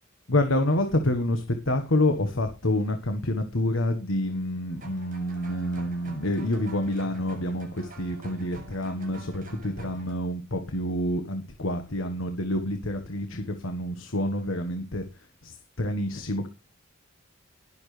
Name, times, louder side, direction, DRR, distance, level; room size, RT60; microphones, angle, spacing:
voice 1, 0.3-15.0 15.4-16.5, left 1 dB, 80° left, 7 dB, 1.5 m, -28 dB
sound 1, 4.7-10.1, right 2 dB, 45° right, 7.4 m, -46 dB
19.5 x 7.2 x 3.4 m, 0.28 s
head